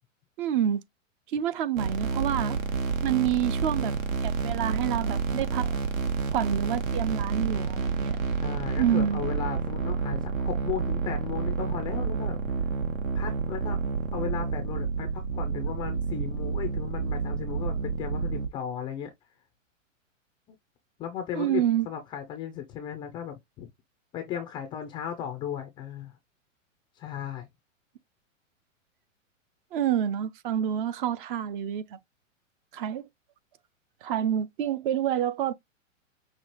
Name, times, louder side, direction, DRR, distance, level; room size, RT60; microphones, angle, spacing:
voice 1, 0.4-0.8 1.3-2.6 3.0-3.9 4.2-5.7 6.3-8.2 8.8-9.2 21.3-21.9 29.7-32.0 32.7-33.1 34.0-35.5, right 10 dB, 40° right, 0.5 m, -28 dB
sound 1, 1.7-18.5, right 5 dB, 80° right, 1.3 m, -29 dB
voice 2, 8.4-12.4 13.1-13.8 14.1-19.1 21.0-23.7 24.1-26.2 27.0-27.5, left 9 dB, 15° left, 0.3 m, -36 dB
5.9 x 2.4 x 2.9 m
hypercardioid pair, 120°, 39 cm